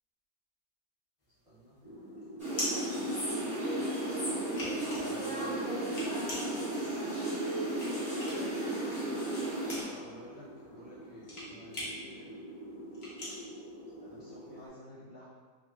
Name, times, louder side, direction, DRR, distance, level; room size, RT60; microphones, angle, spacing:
sound 1, 1.2-3.8 4.2-8.6 8.9-14.4, left 1 dB, 50° left, 0.6 m, -41 dB
voice 1, 1.4-1.8 2.9-3.8 4.2-5.6 8.3-8.5 9.8-12.3 14.0-15.2, right 1 dB, 65° right, -10 dB, 0.5 m, -54 dB
sound 2, 1.8-14.7, equal, 45° right, 1.2 m, -47 dB
sound 3, 2.4-9.8, right 1 dB, 5° right, 0.6 m, -34 dB
3.1 x 2.9 x 2.2 m, 1.5 s
omnidirectional pair, 1.8 m